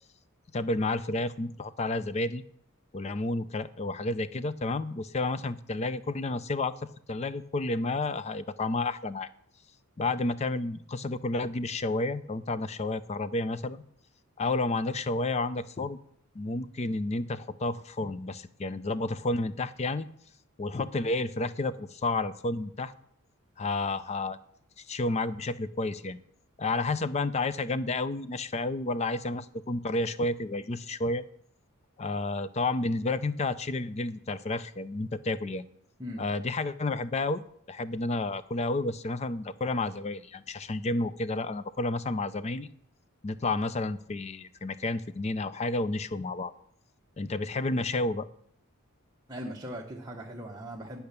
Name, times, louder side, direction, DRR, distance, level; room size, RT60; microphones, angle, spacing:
voice 1, 0.5-2.4 2.9-6.8 7.1-9.3 10.0-13.8 14.4-16.0 16.3-20.1 20.6-22.9 23.6-24.4 24.8-26.2 26.6-31.2 32.0-35.6 36.2-37.4 37.7-42.7 43.2-46.5 47.2-48.3, left 2 dB, 30° left, 15 dB, 0.4 m, -31 dB
voice 2, 49.3-51.0, equal, 20° right, -2 dB, 0.9 m, -39 dB
10.5 x 5.8 x 6.7 m, 0.67 s
head